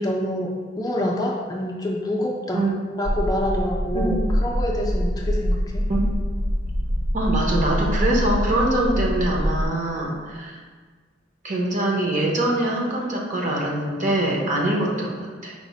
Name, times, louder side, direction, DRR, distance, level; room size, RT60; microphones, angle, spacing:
voice 1, 0.0-2.7 3.0-5.8, left 1 dB, 20° left, -1 dB, 0.4 m, -26 dB
sound 1, 3.0-9.6, equal, 75° right, 0.5 m, -24 dB
voice 2, 7.1-10.6 11.4-15.5, right 1 dB, 40° right, -2 dB, 0.7 m, -23 dB
4.8 x 2.1 x 4.1 m, 1.5 s
head